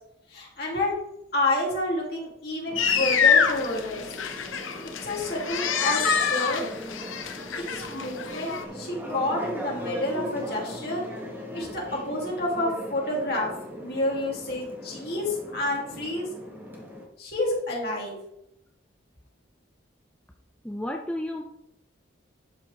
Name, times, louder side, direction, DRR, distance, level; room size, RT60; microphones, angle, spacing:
voice 1, 0.3-1.0 1.3-4.1 4.8-6.6 7.7-11.0 11.5-13.5 13.8-16.3 17.2-18.1, left 1 dB, 55° left, -3 dB, 2.6 m, -29 dB
sound 1, 2.7-17.0, equal, 10° right, 1.3 m, -39 dB
sound 2, 2.8-8.6, left 6 dB, 90° left, 0.7 m, -26 dB
voice 2, 20.6-21.4, left 1 dB, 5° left, 2 dB, 0.5 m, -32 dB
11.5 x 4.4 x 3.3 m, 0.80 s
head